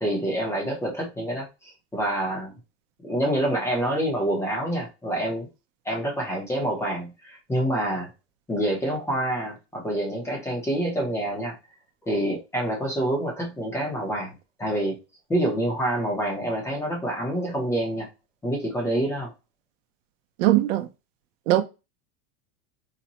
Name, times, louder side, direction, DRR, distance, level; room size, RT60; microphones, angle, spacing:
voice 1, 0.0-2.6 3.0-5.5 5.8-8.1 8.5-11.5 12.0-14.3 14.6-14.9 15.3-18.1 18.4-19.3, right 1 dB, 5° left, 0.6 m, -27 dB
voice 2, 20.4-20.9 21.5-21.6, right 14 dB, 75° right, 0.6 m, -20 dB
4.0 x 2.1 x 2.8 m
supercardioid pair, 170°, 39 cm